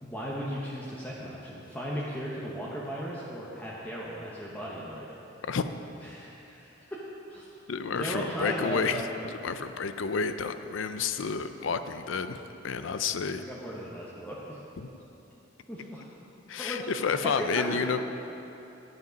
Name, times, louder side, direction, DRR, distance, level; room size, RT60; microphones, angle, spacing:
voice 1, 0.0-5.1 6.0-7.0 7.3-7.5 8.0-9.1 13.4-14.6 15.7-16.0 16.6-16.8 17.2-17.9, equal, 10° left, -6 dB, 1.0 m, -36 dB
voice 2, 7.7-13.4 14.8-14.9 16.5-18.0, left 5 dB, 75° left, 10 dB, 0.5 m, -30 dB
10.5 x 8.1 x 5.2 m, 2.9 s
head